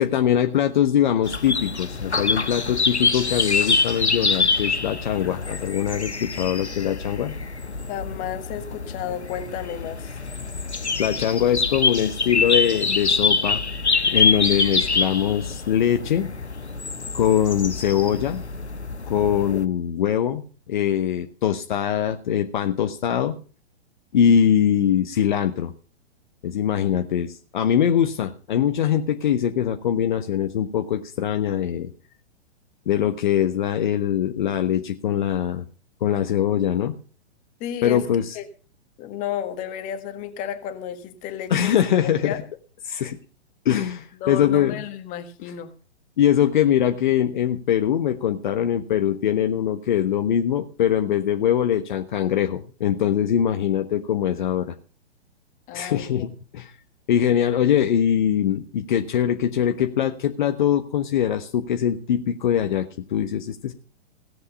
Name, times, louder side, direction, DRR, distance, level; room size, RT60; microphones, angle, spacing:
voice 1, 0.0-7.3 11.0-13.6 14.1-16.3 17.1-18.4 19.1-23.4 24.1-25.7 26.4-31.9 32.9-35.6 36.0-36.9 37.8-38.4 41.5-42.3 42.9-43.2 43.6-44.8 46.2-54.7 55.7-56.7 57.1-63.7, left 9 dB, 45° left, 6 dB, 1.2 m, -22 dB
sound 1, 1.2-19.6, left 4 dB, 85° left, 1.1 m, -25 dB
voice 2, 7.9-10.2 37.6-38.0 38.3-38.4 39.0-42.4 44.2-45.7 55.7-56.3, left 9 dB, 25° left, 9 dB, 1.7 m, -32 dB
17.5 x 7.9 x 5.5 m, 0.39 s
figure-of-eight pair, 115°, 33 cm